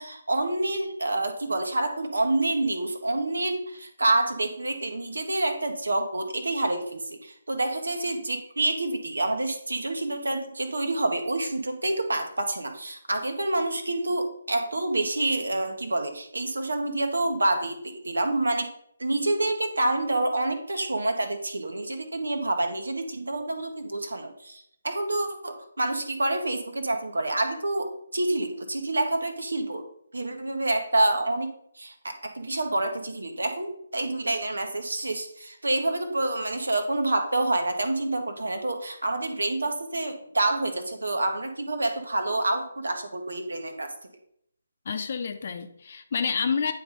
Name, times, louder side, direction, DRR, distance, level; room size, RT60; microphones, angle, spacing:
voice 1, 0.0-18.7 19.0-29.8 30.1-43.9, right 2 dB, 75° right, 6 dB, 1.2 m, -27 dB
voice 2, 44.8-46.7, left 6 dB, 50° left, 8 dB, 0.8 m, -28 dB
9.2 x 3.4 x 5.1 m, 0.70 s
figure-of-eight pair, 145°, 0 cm